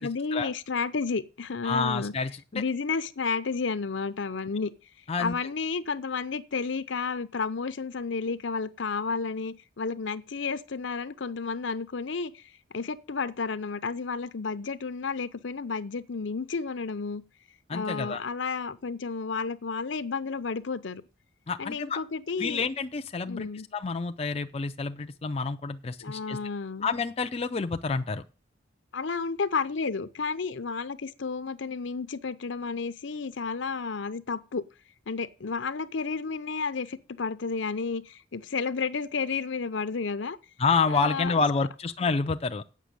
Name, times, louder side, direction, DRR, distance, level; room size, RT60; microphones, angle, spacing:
voice 1, 0.0-2.1 2.5-4.7 5.2-12.4 12.7-17.2 17.7-21.0 21.6-22.6 23.2-23.7 26.0-26.9 28.9-34.6 35.1-40.4 40.9-41.7, left 4 dB, 70° left, 0.7 m, -32 dB
voice 2, 1.6-2.6 5.1-5.4 17.7-18.2 21.5-22.0 22.4-26.4 26.8-28.2 40.6-42.6, left 4 dB, 30° left, 0.4 m, -28 dB
8.3 x 6.0 x 7.6 m
head